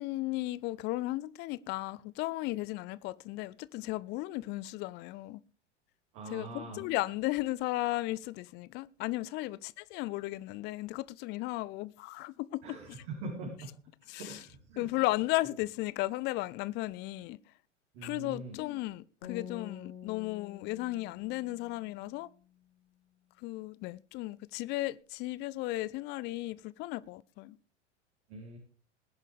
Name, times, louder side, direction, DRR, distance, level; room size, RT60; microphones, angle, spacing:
voice 1, 0.0-5.4 6.3-12.8 14.1-14.4 14.8-17.4 18.0-22.3 23.4-27.6, left 18 dB, 30° left, 0.5 m, -35 dB
voice 2, 6.1-6.8 12.6-13.8 14.2-14.4 14.7-14.9 17.9-18.6 28.3-28.6, right 3 dB, 50° right, 4.1 m, -42 dB
sound 1, 19.2-22.4, left 9 dB, 55° left, 5.1 m, -48 dB
20.0 x 10.5 x 3.4 m
figure-of-eight pair, 85°, 36 cm